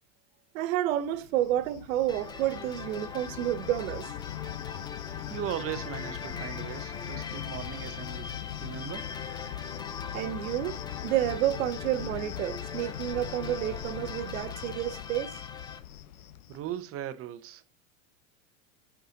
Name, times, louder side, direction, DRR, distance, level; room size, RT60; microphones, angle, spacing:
voice 1, 0.5-4.1 10.1-15.4, right 13 dB, 75° right, 0.8 m, -30 dB
Cricket, 1.0-16.8, left 11 dB, 85° left, 0.8 m, -40 dB
sound 1, 2.1-15.8, left 5 dB, 10° left, 0.4 m, -42 dB
voice 2, 5.3-9.1 16.5-17.6, right 11 dB, 35° right, 0.8 m, -38 dB
5.4 x 4.9 x 3.8 m
supercardioid pair, 120°, 41 cm